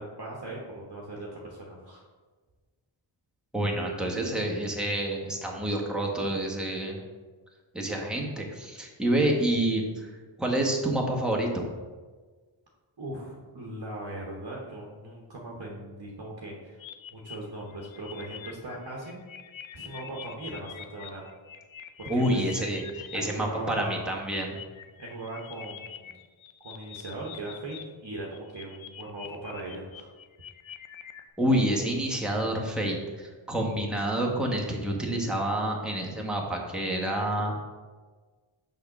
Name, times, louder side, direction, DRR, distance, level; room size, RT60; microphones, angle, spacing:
voice 1, 0.0-2.0 13.0-16.8 17.1-19.2 19.7-21.3 22.0-22.2 23.1-24.0 25.0-26.1 26.6-30.1, right 1 dB, 50° right, -2 dB, 1.1 m, -39 dB
voice 2, 3.5-7.0 7.7-10.1 10.4-11.6 22.1-24.6 31.4-37.6, right 1 dB, ahead, -1 dB, 1.1 m, -28 dB
sound 1, 16.8-23.2 23.9-27.8 28.1-31.3, left 9 dB, 75° left, 0.6 m, -45 dB
6.2 x 3.6 x 5.9 m, 1.4 s
wide cardioid pair, 65°, 48 cm